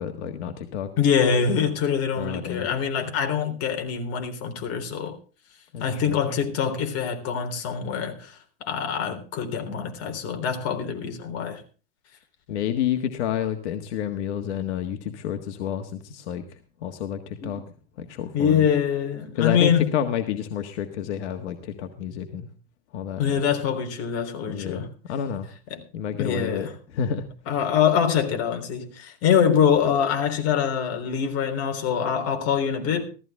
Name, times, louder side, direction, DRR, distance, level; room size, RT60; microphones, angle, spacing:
voice 1, 0.0-0.9 2.1-2.7 5.7-6.2 12.5-16.4 16.8-17.6 18.0-18.7 19.4-22.5 22.9-23.4 24.5-25.5 25.9-26.7 26.9-27.2, left 9 dB, 80° left, 1.6 m, -29 dB
voice 2, 1.0-5.2 5.8-11.6 17.4-17.6 18.3-19.9 23.2-24.9 25.7-25.8 26.2-26.7 27.5-33.0, left 7 dB, 45° left, 3.7 m, -24 dB
15.5 x 14.0 x 3.5 m
supercardioid pair, 135°, 34 cm